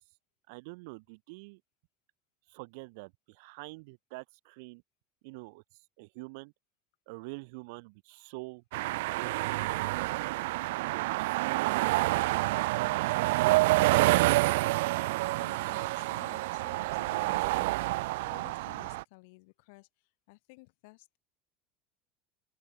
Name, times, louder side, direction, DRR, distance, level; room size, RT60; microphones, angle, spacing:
voice 1, 0.5-1.6 2.5-4.8 5.2-6.5 7.1-9.8 10.8-11.8 13.3-13.8, right 29 dB, 65° right, 1.4 m, -46 dB
sound 1, 8.7-19.0, right 20 dB, 85° right, 0.3 m, -28 dB
voice 2, 12.8-14.0 15.4-19.9 20.3-21.2, left 28 dB, 65° left, 5.5 m, -55 dB
open air
cardioid pair, 175°, 0 cm